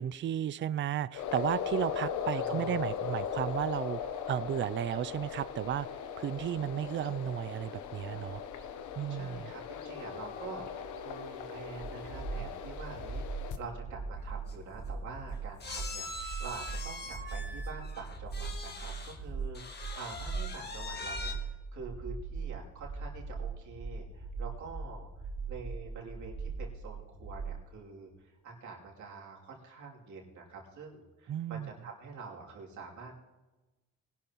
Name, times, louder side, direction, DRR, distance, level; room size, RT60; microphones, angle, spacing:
voice 1, 0.0-4.0 4.3-8.4 9.0-9.5 31.3-31.7, right 10 dB, 40° right, 17 dB, 0.4 m, -34 dB
sound 1, 1.1-13.6, left 7 dB, 80° left, 1.0 m, -38 dB
voice 2, 2.3-2.8 9.1-25.1 25.5-33.2, right 4 dB, 70° right, -2 dB, 2.9 m, -46 dB
sound 2, 11.8-27.6, right 4 dB, 90° right, 3.0 m, -40 dB
sound 3, 14.2-14.3 14.5-14.7 15.6-19.2 19.5-21.3, left 2 dB, 35° left, 1.6 m, -42 dB
20.0 x 11.5 x 3.0 m, 1.1 s
cardioid pair, 90°, 30 cm